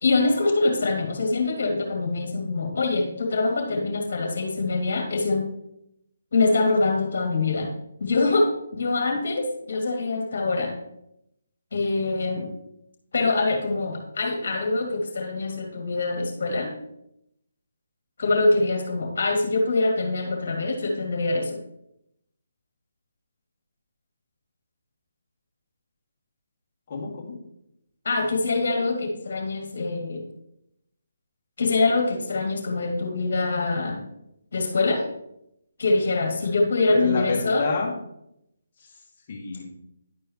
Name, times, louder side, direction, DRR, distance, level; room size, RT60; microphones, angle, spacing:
voice 1, 0.0-5.5 6.3-7.7 8.0-10.7 11.7-12.5 13.1-16.7 18.2-21.6 28.0-30.3 31.6-34.0 34.5-35.0 35.8-37.7, left 3 dB, 60° left, 2 dB, 2.3 m, -24 dB
voice 2, 26.9-27.4 36.9-37.9 38.8-38.9 39.3-39.6, left 4 dB, 40° left, -2 dB, 2.2 m, -27 dB
11.0 x 4.7 x 3.0 m, 0.80 s
figure-of-eight pair, 150°, 0 cm